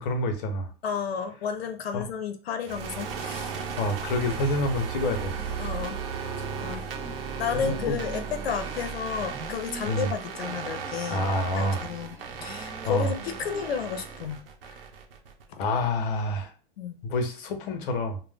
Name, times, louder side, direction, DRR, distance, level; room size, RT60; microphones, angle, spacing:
voice 1, 0.0-0.7 1.9-2.0 3.5-5.4 6.2-6.4 7.5-8.0 9.9-10.1 11.1-11.8 12.4-13.1 15.6-16.5 17.0-18.2, left 1 dB, 60° left, 6 dB, 0.8 m, -28 dB
voice 2, 0.8-3.6 5.6-6.0 6.6-6.9 7.4-11.2 11.6-14.5 15.5-15.6 16.8-16.9, left 7 dB, 90° left, 7 dB, 0.7 m, -32 dB
sound 1, 2.6-15.4, right 6 dB, 70° right, 0.8 m, -35 dB
sound 2, 5.1-7.2 7.5-8.9 9.2-10.9 11.2-14.4, right 2 dB, 5° right, 0.4 m, -45 dB
2.5 x 2.1 x 3.4 m, 0.39 s
hypercardioid pair, 130°, 30 cm